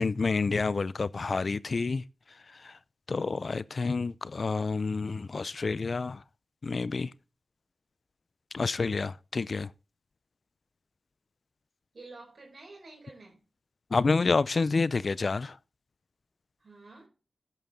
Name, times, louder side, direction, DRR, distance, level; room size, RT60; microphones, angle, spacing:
voice 1, 0.0-2.0 2.6-2.7 3.1-6.2 6.6-7.1 8.5-9.7 13.9-15.6, left 4 dB, 60° left, 0.6 m, -28 dB
voice 2, 11.9-13.4 16.6-17.1, right 3 dB, 65° right, 4.8 m, -49 dB
13.5 x 9.0 x 3.8 m
cardioid pair, 45°, 0 cm